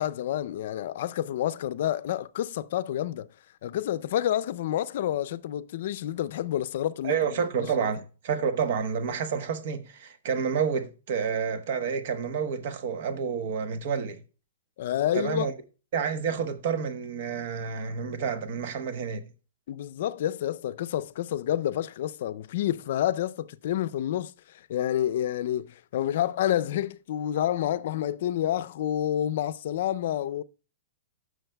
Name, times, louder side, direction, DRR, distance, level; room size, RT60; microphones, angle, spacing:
voice 1, 0.0-3.3 3.6-7.2 7.6-7.9 14.8-15.5 19.7-24.3 24.7-30.4, left 11 dB, 60° left, 0.4 m, -29 dB
voice 2, 7.0-14.2 15.1-15.5 15.9-19.2, right 6 dB, 55° right, 1.0 m, -29 dB
14.5 x 6.4 x 2.2 m
hypercardioid pair, 145°, 0 cm